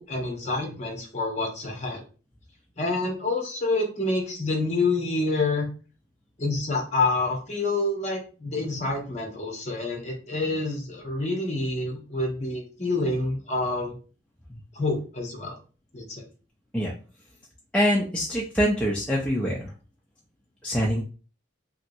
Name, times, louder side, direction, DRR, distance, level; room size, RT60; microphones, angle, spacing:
voice 1, 0.0-2.0 2.8-5.7 6.4-13.9 14.7-15.6 15.9-16.2, left 2 dB, 35° left, 1 dB, 0.8 m, -27 dB
voice 2, 17.7-19.7 20.6-21.0, equal, 5° left, -3 dB, 0.4 m, -24 dB
3.0 x 2.7 x 2.6 m, 0.36 s
head